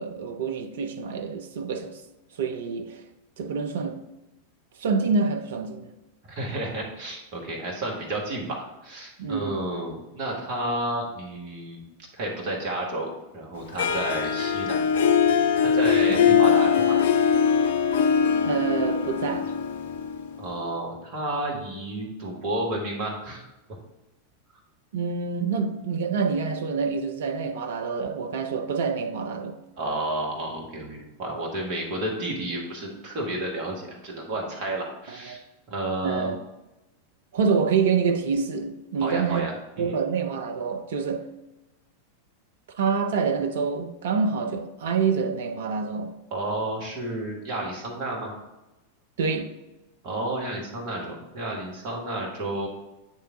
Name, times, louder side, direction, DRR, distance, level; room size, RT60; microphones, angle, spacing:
voice 1, 0.0-2.0 2.4-3.0 3.4-4.0 4.8-5.9 9.2-9.7 16.1-16.4 18.4-19.5 24.9-29.6 35.1-35.4 36.0-36.4 37.3-39.5 39.8-41.3 42.8-46.2 49.2-49.5, right 5 dB, 60° right, 0.5 m, -27 dB
voice 2, 6.3-11.8 12.1-15.1 15.6-17.0 20.4-23.4 29.8-35.4 35.7-36.3 39.0-40.0 46.3-48.3 50.0-52.7, right 1 dB, 40° right, 1.5 m, -31 dB
Harp, 13.8-20.7, left 7 dB, 55° left, 0.4 m, -22 dB
8.5 x 3.4 x 3.7 m
figure-of-eight pair, 90°, 0 cm